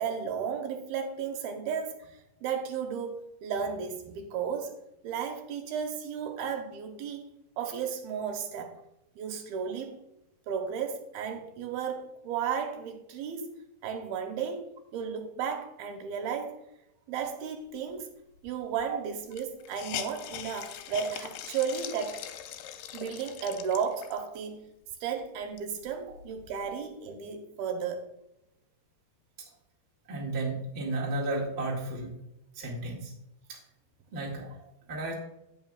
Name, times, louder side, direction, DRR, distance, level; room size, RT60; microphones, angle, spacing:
voice 1, 0.0-4.8 5.0-7.2 7.6-8.8 9.2-10.0 10.5-13.6 13.8-14.6 14.9-16.6 17.1-18.1 18.4-22.2 22.9-24.6 25.0-28.1, right 7 dB, 80° right, 5 dB, 2.6 m, -34 dB
Hiss, 18.5-18.6 18.8-18.9 19.3-24.4 24.9-25.0 25.4-26.8, left 11 dB, 85° left, 2.5 m, -42 dB
voice 2, 30.1-32.1 32.5-33.1 33.5-33.6 34.1-35.1, right 2 dB, 30° right, -3 dB, 1.2 m, -33 dB
16.5 x 5.8 x 2.3 m, 0.88 s
omnidirectional pair, 4.5 m